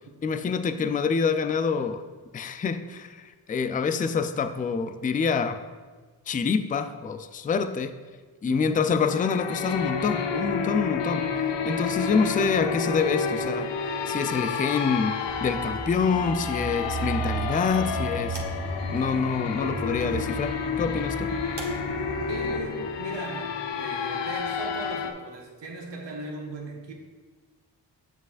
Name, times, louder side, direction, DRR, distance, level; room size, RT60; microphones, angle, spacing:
voice 1, 0.2-2.0 2.3-5.6 6.3-7.9 8.4-11.3 11.6-13.7 14.1-15.1 15.4-18.4 18.9-21.3, left 5 dB, 20° left, 9 dB, 0.4 m, -26 dB
voice 2, 8.5-8.8 22.3-26.9, right 2 dB, 70° right, 0 dB, 1.4 m, -38 dB
sound 1, 8.9-25.1, left 5 dB, 70° left, 0.7 m, -30 dB
sound 2, 15.2-22.7, right 3 dB, 40° right, 1.5 m, -35 dB
7.3 x 5.9 x 2.5 m, 1.4 s
cardioid pair, 50°, 44 cm